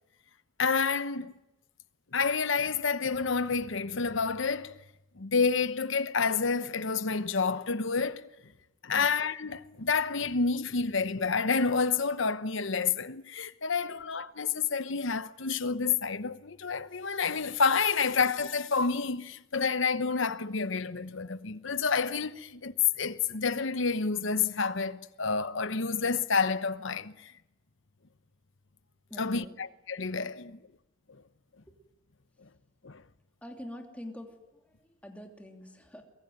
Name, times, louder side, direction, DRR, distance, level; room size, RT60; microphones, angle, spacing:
voice 1, 0.6-1.3 2.1-4.8 5.2-8.3 8.8-27.3 29.2-30.6 31.1-31.2 32.8-33.0, left 5 dB, 65° left, 1.0 m, -29 dB
voice 2, 29.1-29.6 30.5-30.6 31.7-31.8 33.4-36.0, left 1 dB, 5° left, 2.9 m, -46 dB
24.0 x 22.5 x 9.5 m
head